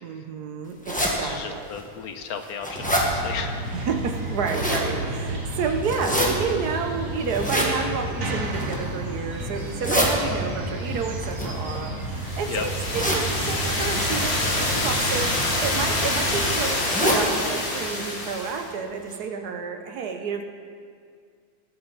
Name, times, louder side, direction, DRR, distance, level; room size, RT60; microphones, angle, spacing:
voice 1, 0.0-1.7 3.7-20.4, right 5 dB, 80° right, 5 dB, 1.6 m, -30 dB
sound 1, 0.8-1.1 1.8-1.9 2.3-3.1 4.2-4.9 5.8-6.3 7.3-7.7 8.4-8.9 9.6-10.1 11.2-12.2 12.9-13.2 13.9-14.1 15.2-15.4 15.8-15.9 16.1-16.2 16.8-17.2 17.6-17.7 18.0-18.1 18.7-18.8 19.1-19.2, equal, 5° left, 1.6 m, -26 dB
voice 2, 1.0-3.7 12.5-12.6, left 7 dB, 70° left, 7 dB, 1.3 m, -34 dB
sound 2, 2.7-16.5, right 1 dB, 55° right, 2.1 m, -31 dB
sound 3, 12.1-18.7, left 2 dB, 40° left, 1.8 m, -26 dB
20.5 x 7.9 x 4.1 m, 2.1 s
omnidirectional pair, 1.6 m